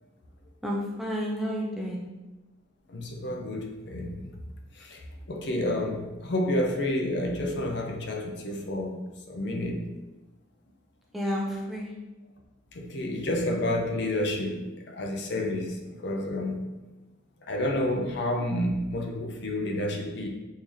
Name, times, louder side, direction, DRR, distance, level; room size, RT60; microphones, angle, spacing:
voice 1, 0.6-2.0 11.1-11.9, equal, ahead, -3 dB, 0.4 m, -30 dB
voice 2, 2.9-4.3 4.8-5.0 5.3-9.0 9.3-9.8 12.7-16.6 17.4-20.3, left 1 dB, 60° left, 2 dB, 0.5 m, -30 dB
3.7 x 2.7 x 3.1 m, 1.1 s
head